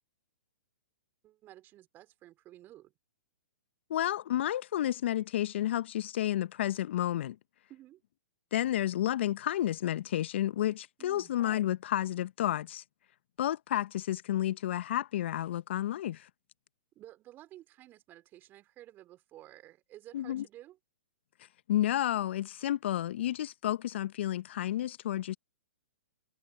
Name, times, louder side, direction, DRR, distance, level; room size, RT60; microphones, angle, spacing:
voice 1, 1.2-2.9 7.7-8.0 11.0-11.3 17.0-20.8, right 14 dB, 30° right, 4.1 m, -53 dB
voice 2, 3.9-7.4 8.5-12.8 13.4-16.3 20.1-20.4 21.7-25.4, left 12 dB, 55° left, 1.0 m, -31 dB
hypercardioid pair, 120°, 7 cm